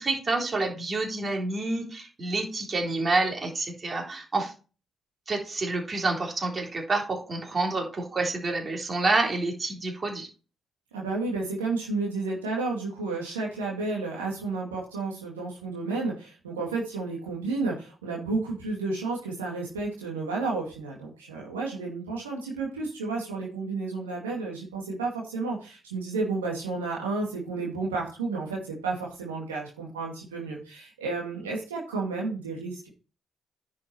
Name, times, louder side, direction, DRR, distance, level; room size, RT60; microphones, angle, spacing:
voice 1, 0.0-4.5 5.3-10.3, right 3 dB, 40° right, 1 dB, 3.6 m, -28 dB
voice 2, 10.9-32.9, right 3 dB, 85° right, -3 dB, 2.3 m, -31 dB
10.5 x 6.2 x 4.4 m, 0.34 s
hypercardioid pair, 40°, 0 cm